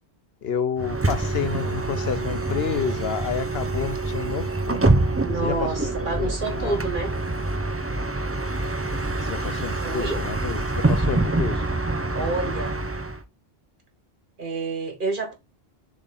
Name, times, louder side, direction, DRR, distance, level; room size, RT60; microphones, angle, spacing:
voice 1, 0.4-6.8 9.2-11.7, left 7 dB, 70° left, 1.0 m, -30 dB
Bus, 0.8-13.2, right 2 dB, 15° right, 0.5 m, -26 dB
voice 2, 5.2-7.1 9.8-10.2 12.1-12.8 14.4-15.3, right 3 dB, 50° right, 1.7 m, -28 dB
7.3 x 3.7 x 4.0 m
omnidirectional pair, 1.1 m